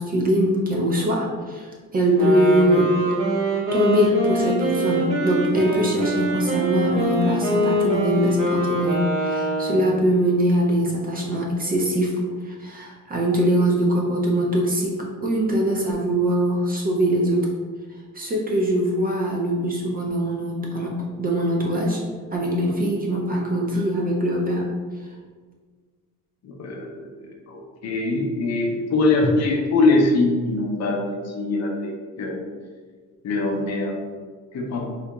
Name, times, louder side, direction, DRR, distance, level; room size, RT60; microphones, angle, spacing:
voice 1, 0.0-3.0 3.7-17.5 18.1-22.0 22.3-24.7 29.2-29.3, right 1 dB, 30° right, -2 dB, 0.4 m, -22 dB
Wind instrument woodwind instrument, 2.1-10.0, equal, 70° right, 1.3 m, -23 dB
voice 2, 26.4-32.4 33.2-34.0 34.5-34.9, left 2 dB, 50° left, 0 dB, 0.5 m, -23 dB
3.9 x 2.7 x 2.2 m, 1.5 s
cardioid pair, 155°, 34 cm